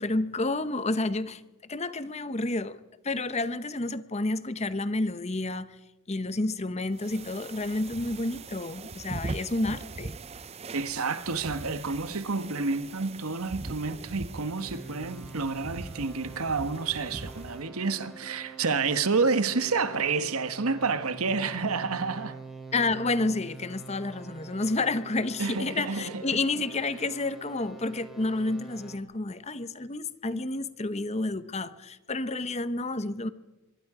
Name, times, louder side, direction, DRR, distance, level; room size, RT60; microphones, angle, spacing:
voice 1, 0.0-5.8 6.1-10.1 22.7-33.3, left 2 dB, 30° left, 0.8 m, -30 dB
sound 1, 7.0-17.7, right 3 dB, 30° right, 0.6 m, -41 dB
voice 2, 10.7-22.4 25.4-26.4, right 4 dB, 80° right, 1.4 m, -29 dB
sound 2, 14.6-29.0, right 4 dB, ahead, 3.7 m, -46 dB
24.5 x 22.5 x 4.9 m
head